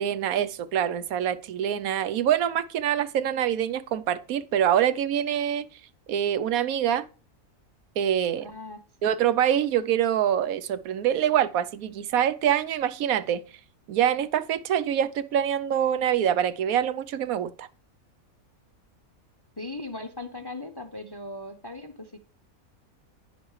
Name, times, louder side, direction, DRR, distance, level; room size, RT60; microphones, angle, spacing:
voice 1, 0.0-5.7 6.1-7.1 8.0-8.5 9.0-13.4 13.9-17.7, right 10 dB, 90° right, 1.1 m, -25 dB
voice 2, 8.4-9.1 19.6-22.2, left 2 dB, 30° left, 0.4 m, -39 dB
10.5 x 10.0 x 3.2 m
omnidirectional pair, 1.5 m